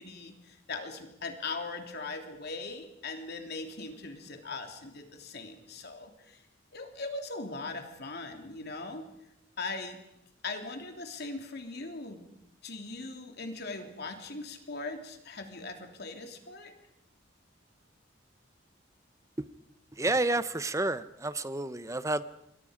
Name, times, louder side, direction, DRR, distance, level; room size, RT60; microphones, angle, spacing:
voice 1, 0.0-6.4 6.7-9.0 9.6-10.0 10.4-12.2 12.6-16.7, left 3 dB, 55° left, 4 dB, 3.1 m, -40 dB
voice 2, 19.9-22.2, right 2 dB, 15° right, 14 dB, 0.8 m, -30 dB
27.0 x 22.5 x 5.1 m, 0.84 s
head